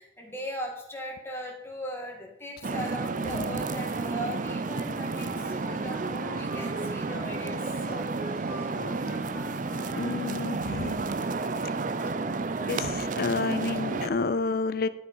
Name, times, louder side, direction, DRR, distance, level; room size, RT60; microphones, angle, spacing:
voice 1, 0.0-8.0 8.5-8.7, equal, 15° left, -1 dB, 2.0 m, -38 dB
sound 1, 2.6-14.1, right 3 dB, 45° right, 0.5 m, -31 dB
Wind instrument woodwind instrument, 5.0-10.8, equal, 10° right, 1.4 m, -43 dB
voice 2, 9.9-11.1 12.7-14.9, left 4 dB, 55° left, 14 dB, 0.5 m, -29 dB
11.5 x 5.2 x 5.5 m, 0.82 s
head